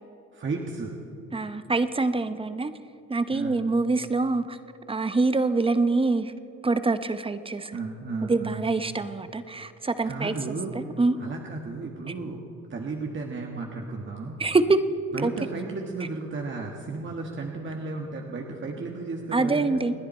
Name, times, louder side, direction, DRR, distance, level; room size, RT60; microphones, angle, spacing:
voice 1, 0.3-1.0 2.3-2.4 3.3-3.6 7.7-8.6 10.0-10.9 11.2-14.4 15.1-19.9, right 3 dB, 40° right, 0 dB, 1.6 m, -34 dB
voice 2, 1.3-2.7 3.1-4.6 4.9-6.3 6.6-7.8 8.3-10.3 10.7-11.2 14.4-14.8 15.2-15.3 19.3-19.9, right 3 dB, 20° right, 11 dB, 0.8 m, -25 dB
29.0 x 10.0 x 4.4 m, 2.9 s
cardioid pair, 90°, 30 cm